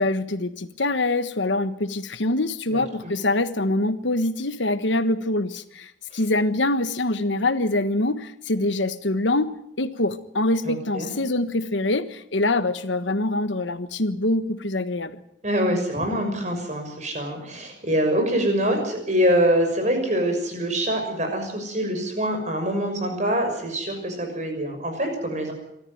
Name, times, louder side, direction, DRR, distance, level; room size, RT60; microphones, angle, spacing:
voice 1, 0.0-15.2, left 2 dB, 85° left, 11 dB, 1.4 m, -24 dB
voice 2, 10.6-11.1 15.4-25.5, equal, 40° right, 5 dB, 6.3 m, -24 dB
24.5 x 14.0 x 9.5 m, 0.80 s
head